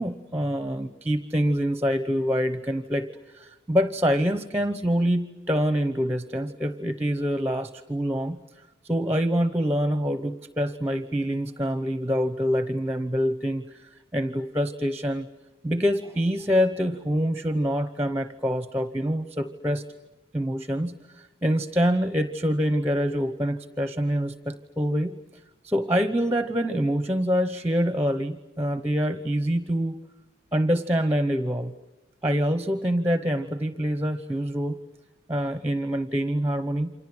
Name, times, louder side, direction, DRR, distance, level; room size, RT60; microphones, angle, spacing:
voice 1, 0.0-3.1 3.3-8.4 8.9-13.8 14.1-15.3 15.6-19.8 20.3-25.1 25.6-29.9 30.5-31.7 32.2-34.8 35.3-36.9, equal, 10° right, 12 dB, 0.9 m, -25 dB
29.0 x 25.5 x 7.8 m, 1.0 s
head